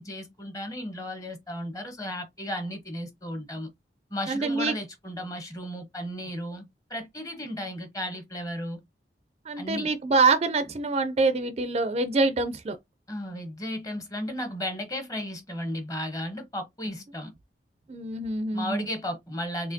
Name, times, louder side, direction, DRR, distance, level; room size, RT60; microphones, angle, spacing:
voice 1, 0.0-3.7 4.1-8.8 9.6-9.9 13.1-17.3 18.5-19.7, left 1 dB, 20° left, 1.0 m, -34 dB
voice 2, 4.3-4.7 9.5-12.8 17.9-18.9, right 3 dB, 35° right, 0.4 m, -25 dB
4.2 x 3.0 x 2.7 m
head